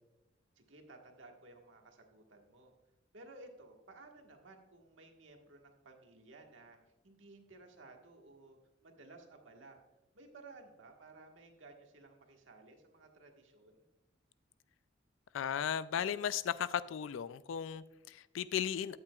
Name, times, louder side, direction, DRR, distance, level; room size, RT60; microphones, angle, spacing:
voice 1, 0.5-2.7 3.1-6.8 7.0-9.8 10.1-13.9, right 2 dB, 80° right, 2 dB, 1.5 m, -56 dB
voice 2, 15.3-19.0, left 8 dB, 90° left, 17 dB, 0.3 m, -36 dB
13.0 x 8.7 x 2.3 m, 1.0 s
head